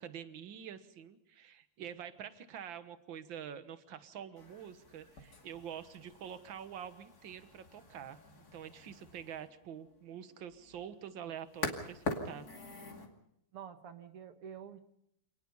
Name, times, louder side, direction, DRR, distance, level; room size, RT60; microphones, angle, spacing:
voice 1, 0.0-8.2 8.5-12.5, right 9 dB, 60° right, 11 dB, 2.0 m, -46 dB
sound 1, 4.4-13.1, left 2 dB, 45° left, 2.8 m, -45 dB
voice 2, 13.5-14.8, right 8 dB, 90° right, 8 dB, 2.5 m, -48 dB
27.0 x 19.5 x 5.5 m, 0.77 s
omnidirectional pair, 2.4 m